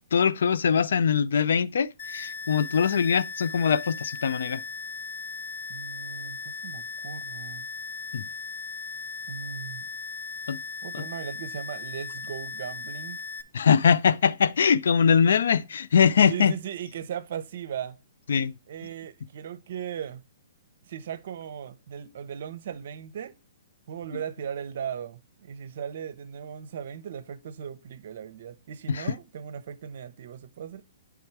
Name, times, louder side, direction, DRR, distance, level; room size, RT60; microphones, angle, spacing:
voice 1, 0.1-4.6 8.1-8.2 10.5-10.6 10.9-11.0 13.5-16.6 18.3-18.5 28.9-29.1, left 7 dB, 75° left, 0.4 m, -22 dB
sound 1, 2.0-13.4, left 5 dB, 35° left, 0.8 m, -37 dB
voice 2, 5.7-7.7 9.3-9.9 10.8-13.2 16.3-18.0 18.7-20.3 20.9-23.4 23.9-30.8, right 8 dB, 55° right, 0.6 m, -37 dB
8.6 x 3.5 x 4.6 m
hypercardioid pair, 160°, 0 cm